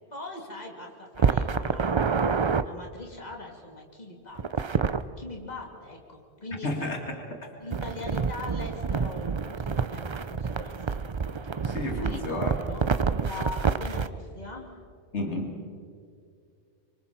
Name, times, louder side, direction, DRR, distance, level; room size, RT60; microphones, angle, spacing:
voice 1, 0.1-4.7 5.2-6.9 7.6-11.0 11.6-12.9 13.2-14.8, left 2 dB, 40° left, 0 dB, 3.0 m, -41 dB
sound 1, 1.2-2.6 4.4-5.0 7.7-14.1, right 5 dB, 40° right, 0.4 m, -27 dB
voice 2, 6.6-7.5 11.6-12.6 15.1-15.6, left 2 dB, 85° left, 2 dB, 2.5 m, -32 dB
27.0 x 24.5 x 4.4 m, 2.3 s
omnidirectional pair, 1.1 m